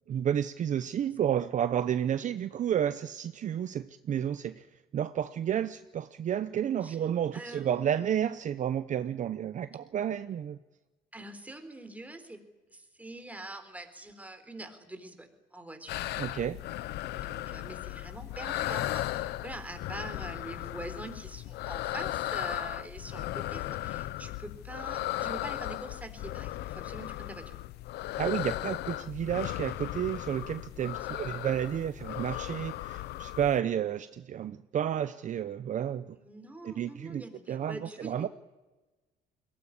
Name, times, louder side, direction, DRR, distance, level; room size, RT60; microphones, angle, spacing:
voice 1, 0.1-4.7 4.9-10.6 16.2-16.6 28.2-36.2 36.6-38.3, right 9 dB, 45° right, 12 dB, 0.8 m, -31 dB
voice 2, 7.3-8.1 11.1-12.4 12.7-16.0 17.1-27.6 31.0-31.2 36.2-38.3, right 2 dB, 10° right, 7 dB, 3.9 m, -44 dB
sound 1, 15.9-33.6, left 15 dB, 75° left, 0.8 m, -36 dB
22.0 x 18.5 x 9.9 m, 1.2 s
cardioid pair, 110°, 17 cm